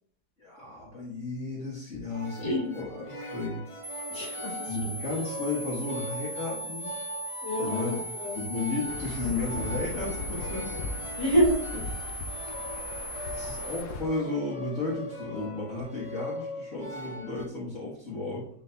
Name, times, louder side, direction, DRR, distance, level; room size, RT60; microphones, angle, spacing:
voice 1, 0.4-2.5 2.7-3.6 4.7-7.0 7.6-8.1 8.3-10.8 13.3-18.5, left 3 dB, 55° left, -6 dB, 1.7 m, -34 dB
sound 1, 2.1-17.5, equal, 35° left, 0.5 m, -41 dB
sound 2, 3.8-13.8, right 1 dB, 25° right, 2.3 m, -39 dB
voice 2, 4.1-5.2 7.4-8.4 11.2-11.6, right 1 dB, 15° left, -4 dB, 1.9 m, -28 dB
Insect / Thunder / Rain, 8.9-14.1, left 3 dB, 90° left, 1.2 m, -38 dB
10.5 x 4.1 x 2.3 m, 0.64 s
omnidirectional pair, 1.7 m